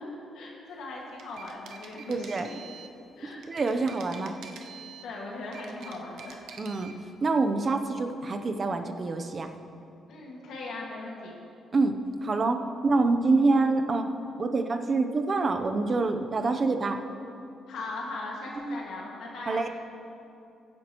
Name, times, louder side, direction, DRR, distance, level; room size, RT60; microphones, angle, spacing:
voice 1, 0.3-2.6 3.2-3.4 3.7-3.9 5.0-6.4 10.1-11.4 17.7-19.6, left 2 dB, 80° left, -3 dB, 1.8 m, -39 dB
sound 1, 1.0-3.0 3.4-5.1 5.4-7.0, right 6 dB, 75° right, 0.8 m, -47 dB
voice 2, 2.1-2.5 3.3-4.3 6.6-6.9 7.2-9.5 11.7-14.1 14.4-17.0 18.6-18.8 19.5-19.7, right 3 dB, 35° right, 6 dB, 0.7 m, -26 dB
16.0 x 9.6 x 3.0 m, 2.7 s
cardioid pair, 115°, 0 cm